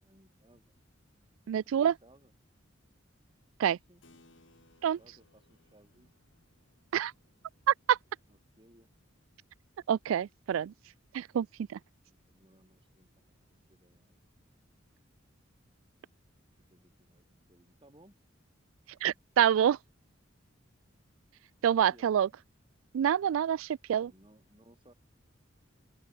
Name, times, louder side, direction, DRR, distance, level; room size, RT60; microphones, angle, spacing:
voice 1, 0.0-0.7 1.5-2.3 3.6-4.2 4.8-6.1 8.3-8.9 12.2-13.3 13.7-14.2 16.4-18.2 21.9-22.2 24.0-24.9, right 1 dB, 25° right, 7.6 m, -62 dB
voice 2, 1.5-1.9 3.6-3.8 4.8-5.0 6.9-7.1 7.7-8.0 9.9-10.7 11.1-11.8 19.0-19.8 21.6-22.3 22.9-24.1, right 9 dB, 90° right, 0.3 m, -27 dB
Keyboard (musical), 4.0-10.0, left 2 dB, 65° left, 4.2 m, -67 dB
open air
head